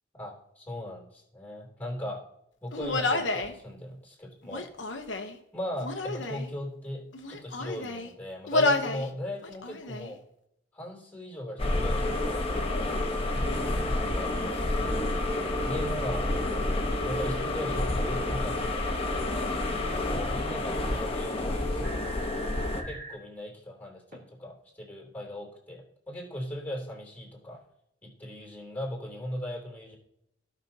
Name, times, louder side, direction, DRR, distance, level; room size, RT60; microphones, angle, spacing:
voice 1, 0.1-2.2 2.6-4.7 5.5-10.2 10.7-14.3 15.6-16.3 17.1-18.9 19.2-27.6 28.0-30.0, left 1 dB, 10° left, -1 dB, 3.2 m, -38 dB
Human voice, 2.7-3.5 4.4-5.4 5.8-6.5 7.1-8.1 8.5-9.1 9.4-10.1, left 2 dB, 85° left, 1.0 m, -30 dB
sound 1, 11.6-22.8, left 2 dB, 30° left, 1.1 m, -29 dB
sound 2, 21.8-23.1 24.1-24.2, right 2 dB, 50° right, 2.2 m, -42 dB
16.0 x 5.9 x 2.8 m, 0.79 s
head